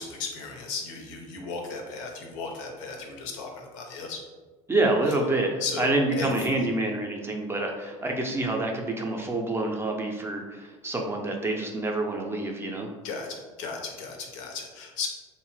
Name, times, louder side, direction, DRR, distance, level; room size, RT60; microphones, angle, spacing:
voice 1, 0.0-4.2 5.6-6.7 13.0-15.1, left 4 dB, 85° left, 2 dB, 0.6 m, -35 dB
voice 2, 4.7-12.9, right 2 dB, 15° right, 1 dB, 0.4 m, -27 dB
2.8 x 2.1 x 3.1 m, 1.3 s
supercardioid pair, 105°, 16 cm